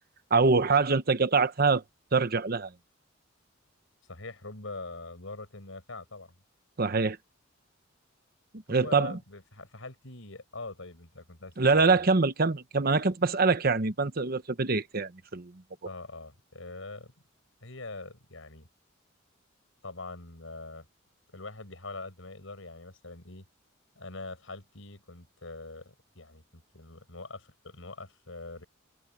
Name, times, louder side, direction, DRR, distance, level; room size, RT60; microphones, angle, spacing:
voice 1, 0.3-1.8 2.1-2.7 6.8-7.2 8.7-9.2 11.6-15.5, right 4 dB, 50° right, 1.0 m, -24 dB
voice 2, 4.1-6.3 8.7-12.0 15.8-17.1 17.6-18.7 19.8-20.9 21.3-23.4 24.0-28.6, left 3 dB, 75° left, 5.5 m, -43 dB
head